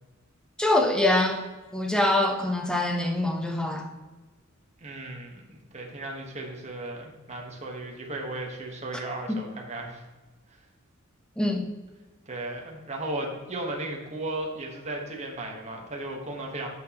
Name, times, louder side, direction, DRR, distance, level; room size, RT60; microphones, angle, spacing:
voice 1, 0.6-1.4 1.7-3.9 9.3-9.4 11.4-11.7, left 1 dB, 5° left, 2 dB, 0.9 m, -24 dB
voice 2, 4.8-10.0 10.5-10.6 12.3-16.7, right 2 dB, 35° right, 0 dB, 1.3 m, -35 dB
10.5 x 6.2 x 3.0 m, 1.3 s
head